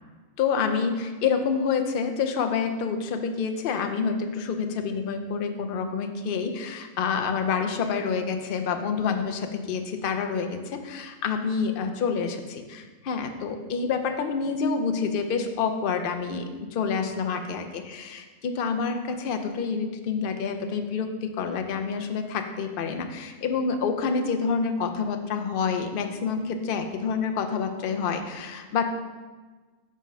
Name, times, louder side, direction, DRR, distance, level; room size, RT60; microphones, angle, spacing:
voice 1, 0.4-28.9, left 5 dB, 60° left, 5 dB, 0.6 m, -28 dB
7.3 x 3.6 x 5.4 m, 1.3 s
omnidirectional pair, 1.5 m